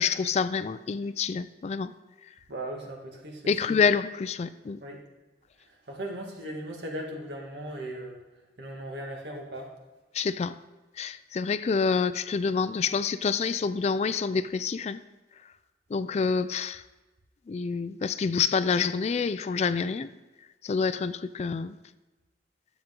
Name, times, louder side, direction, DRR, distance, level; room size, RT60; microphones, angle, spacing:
voice 1, 0.0-1.9 3.5-4.8 10.1-10.5 11.0-15.0 15.9-16.8 17.5-20.1 20.6-21.8, left 5 dB, 40° left, 14 dB, 0.3 m, -27 dB
voice 2, 2.5-3.8 4.8-5.0 5.9-8.2 8.6-9.7, right 1 dB, 75° right, 0 dB, 1.8 m, -38 dB
12.0 x 7.3 x 3.7 m, 1.2 s
head